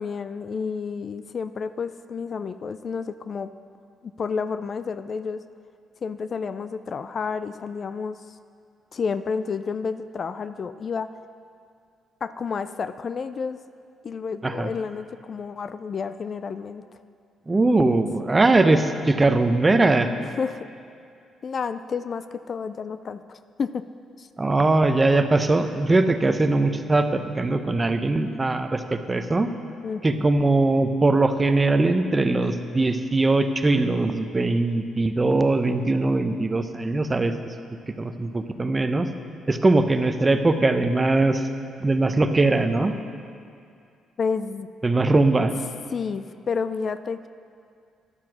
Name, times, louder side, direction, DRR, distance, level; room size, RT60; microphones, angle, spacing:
voice 1, 0.0-3.5 4.2-5.4 6.0-8.2 8.9-11.1 12.2-13.6 14.0-16.8 20.4-20.7 21.4-23.8 24.2-24.3 29.8-30.3 44.2-44.7 45.9-47.3, left 5 dB, 45° left, 12 dB, 0.3 m, -30 dB
voice 2, 17.5-20.1 24.4-29.5 30.0-37.5 38.0-39.1 39.5-41.5 41.8-42.9 44.8-45.5, right 2 dB, 25° right, 8 dB, 0.7 m, -21 dB
11.5 x 7.5 x 6.1 m, 2.3 s
cardioid pair, 90°, 0 cm